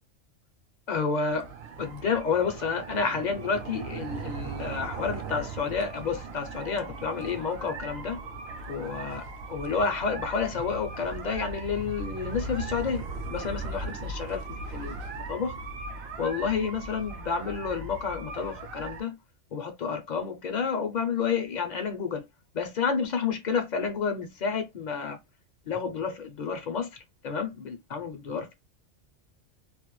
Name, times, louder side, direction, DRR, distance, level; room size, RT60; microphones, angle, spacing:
voice 1, 0.9-1.5 1.8-8.2 8.7-14.5 14.7-15.6 16.2-19.2 19.5-22.3 22.5-25.2 25.7-28.6, left 5 dB, 60° left, 0.5 m, -30 dB
sound 1, 1.3-19.0, right 3 dB, 60° right, 0.8 m, -38 dB
2.4 x 2.1 x 3.0 m
omnidirectional pair, 1.3 m